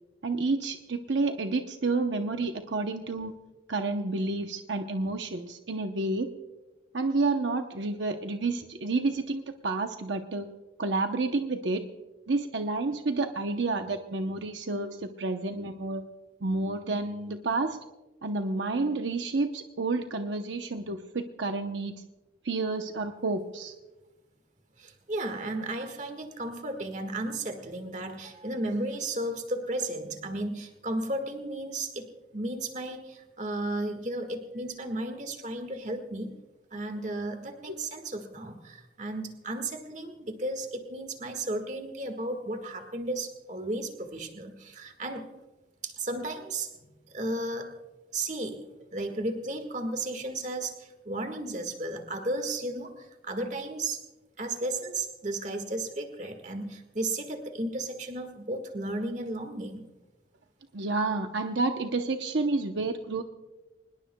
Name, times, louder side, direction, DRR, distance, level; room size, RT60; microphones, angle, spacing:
voice 1, 0.2-3.3 3.7-6.3 6.9-10.5 10.8-11.9 12.3-16.1 16.4-17.8 18.2-22.0 22.4-23.7 37.7-37.8 60.7-63.2, right 3 dB, 75° right, 6 dB, 0.8 m, -30 dB
voice 2, 24.8-36.3 36.7-45.3 45.8-46.7 47.1-47.7 48.1-54.0 54.4-59.9, right 2 dB, 40° right, 6 dB, 1.7 m, -34 dB
24.5 x 20.5 x 2.3 m, 1.1 s
head